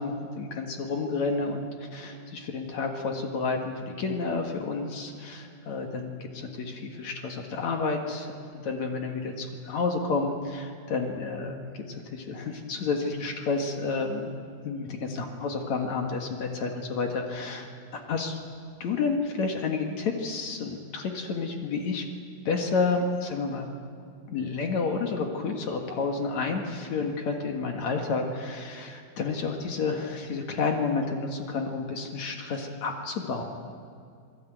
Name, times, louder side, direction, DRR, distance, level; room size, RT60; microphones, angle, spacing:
voice 1, 0.0-14.3 14.6-18.4 18.8-22.0 22.5-23.7 24.3-33.4, left 4 dB, 60° left, 3 dB, 1.9 m, -30 dB
27.5 x 20.0 x 9.3 m, 2.3 s
omnidirectional pair, 5.9 m